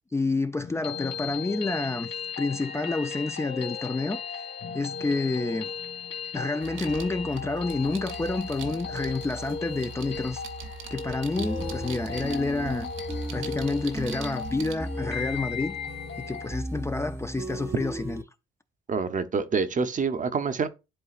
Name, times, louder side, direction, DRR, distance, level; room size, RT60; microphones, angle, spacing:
voice 1, 0.1-4.4 4.7-5.7 6.3-12.9 13.3-15.7 16.2-18.2, left 3 dB, 15° left, 0.4 m, -29 dB
sound 1, 0.6-16.6, left 6 dB, 60° left, 2.4 m, -37 dB
sound 2, 6.6-14.7, right 4 dB, 85° right, 1.0 m, -41 dB
sound 3, 11.4-18.2, right 1 dB, 10° right, 0.8 m, -36 dB
voice 2, 18.9-20.7, right 5 dB, 40° right, 0.8 m, -27 dB
11.0 x 3.8 x 2.5 m
cardioid pair, 90°, 20 cm